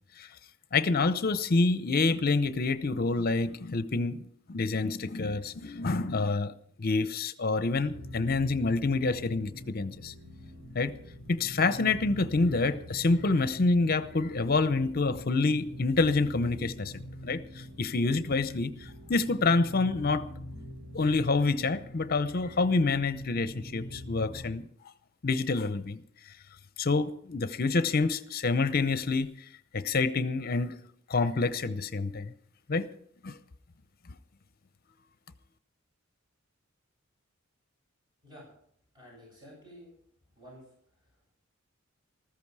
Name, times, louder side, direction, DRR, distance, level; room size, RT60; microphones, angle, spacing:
voice 1, 0.7-4.2 4.5-10.1 10.7-10.9 11.3-16.9 17.2-17.4 17.8-18.7 19.1-20.2 20.9-24.6 25.2-26.0 26.8-29.3 29.7-30.8 31.1-32.3 32.7-32.9 33.2-33.4, left 3 dB, 50° left, 0.8 m, -27 dB
sound 1, 7.6-24.6, left 1 dB, 65° right, 3.1 m, -45 dB
voice 2, 38.9-39.9 40.4-40.7, equal, 20° right, 7.8 m, -50 dB
14.5 x 14.0 x 4.8 m
head